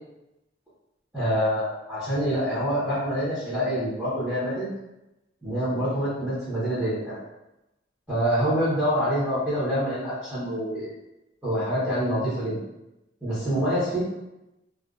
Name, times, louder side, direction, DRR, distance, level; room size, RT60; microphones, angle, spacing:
voice 1, 1.1-4.7 5.4-7.2 8.1-10.9 11.4-12.6 13.2-14.0, equal, 10° right, -13 dB, 0.8 m, -26 dB
2.3 x 2.3 x 2.3 m, 0.94 s
head